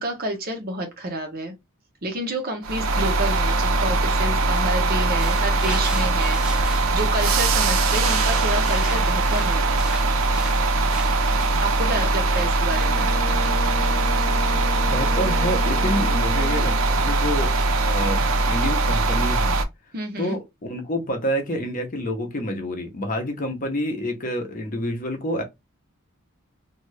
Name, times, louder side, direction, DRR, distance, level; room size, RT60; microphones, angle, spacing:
voice 1, 0.0-1.5 2.0-9.6 11.6-13.1 19.9-20.4, right 1 dB, 45° right, 0.8 m, -29 dB
sound 1, 2.6-19.7, right 2 dB, 75° right, 0.5 m, -21 dB
sound 2, 5.2-11.5, right 1 dB, 5° right, 0.4 m, -37 dB
Brass instrument, 12.7-17.0, left 4 dB, 70° left, 0.4 m, -35 dB
voice 2, 14.8-17.5 17.9-19.6 20.2-25.4, equal, 40° left, 0.7 m, -28 dB
2.7 x 2.4 x 3.1 m
head